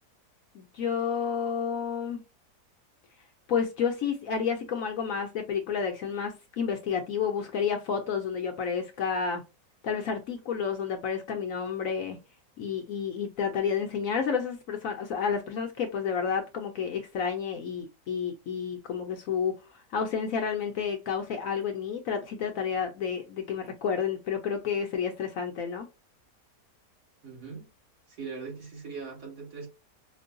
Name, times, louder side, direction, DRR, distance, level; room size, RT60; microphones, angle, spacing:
voice 1, 0.5-2.2 3.5-9.4 9.8-12.2 12.6-19.6 19.9-25.9, left 6 dB, 65° left, 0.9 m, -30 dB
voice 2, 27.2-27.7 28.2-29.7, right 5 dB, 65° right, 2.3 m, -40 dB
5.2 x 2.2 x 2.5 m
omnidirectional pair, 1.8 m